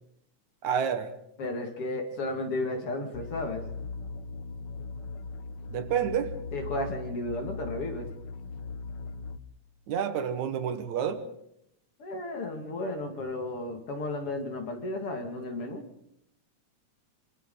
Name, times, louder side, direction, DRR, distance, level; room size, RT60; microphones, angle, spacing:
voice 1, 0.6-1.1 5.7-6.4 9.9-11.3, right 8 dB, 80° right, 9 dB, 2.7 m, -29 dB
voice 2, 1.4-3.6 6.5-8.1 12.0-15.8, left 2 dB, 50° left, 4 dB, 3.0 m, -33 dB
sound 1, 3.1-9.4, left 4 dB, 90° left, 0.9 m, -39 dB
26.5 x 26.0 x 3.9 m, 0.74 s
omnidirectional pair, 3.3 m